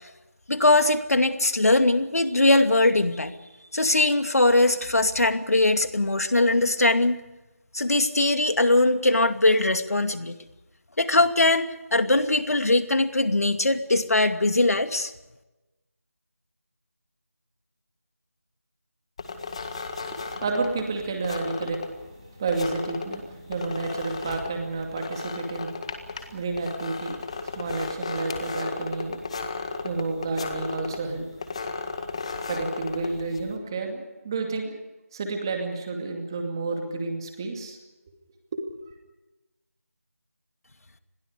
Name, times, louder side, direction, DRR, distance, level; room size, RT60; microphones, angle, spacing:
voice 1, 0.5-3.3 3.7-7.2 7.7-10.4 11.0-15.1, left 2 dB, 70° left, 8 dB, 2.4 m, -21 dB
sound 1, 19.2-33.6, left 4 dB, 20° left, 1.8 m, -35 dB
voice 2, 20.1-21.9 22.3-25.8 26.3-27.2 27.4-29.2 29.8-31.3 32.5-34.7 35.1-37.8 38.5-38.6, right 3 dB, 15° right, 3 dB, 2.4 m, -30 dB
29.5 x 21.5 x 5.0 m, 1.0 s
figure-of-eight pair, 175°, 8 cm